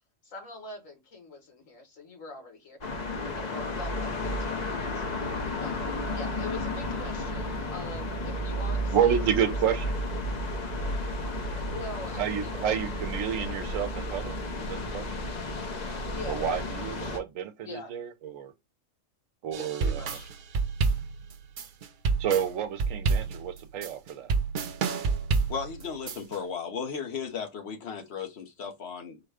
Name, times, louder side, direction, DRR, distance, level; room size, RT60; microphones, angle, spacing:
voice 1, 0.2-2.8 3.2-5.2 5.6-5.8 6.1-9.8 11.7-12.8 16.1-17.1 17.6-17.9 19.6-20.3, left 3 dB, 85° left, 1.9 m, -43 dB
sound 1, 2.8-17.2, left 1 dB, 40° left, 0.8 m, -32 dB
voice 2, 8.9-9.9 12.2-15.1 16.3-18.5 19.4-20.1 22.2-24.3, right 8 dB, 80° right, 1.0 m, -29 dB
sound 2, 19.5-26.4, right 4 dB, 55° right, 0.5 m, -29 dB
voice 3, 25.5-29.2, left 6 dB, 55° left, 1.2 m, -35 dB
4.7 x 2.2 x 4.8 m
omnidirectional pair, 1.3 m